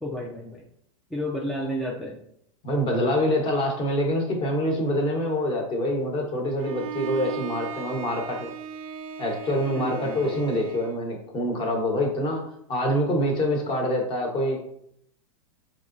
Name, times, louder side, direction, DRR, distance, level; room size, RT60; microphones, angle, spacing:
voice 1, 0.0-0.6 1.1-2.2 9.8-10.4, equal, ahead, -3 dB, 0.4 m, -31 dB
voice 2, 2.6-8.5 9.2-12.4 12.7-14.6, equal, 30° left, 1 dB, 1.1 m, -25 dB
Bowed string instrument, 6.6-11.0, right 6 dB, 80° right, 0.5 m, -37 dB
4.7 x 2.8 x 2.6 m, 0.72 s
hypercardioid pair, 125°, 18 cm